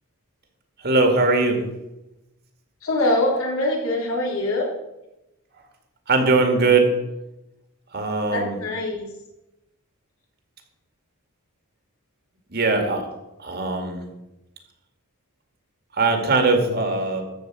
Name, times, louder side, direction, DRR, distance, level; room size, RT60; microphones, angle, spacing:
voice 1, 0.8-1.6 6.1-7.0 7.9-8.6 12.5-13.1 13.4-14.0 15.9-17.2, right 3 dB, 50° right, 5 dB, 2.1 m, -20 dB
voice 2, 2.8-4.7 8.3-9.0, left 1 dB, 75° left, -2 dB, 3.7 m, -23 dB
14.0 x 5.1 x 8.4 m, 0.94 s
head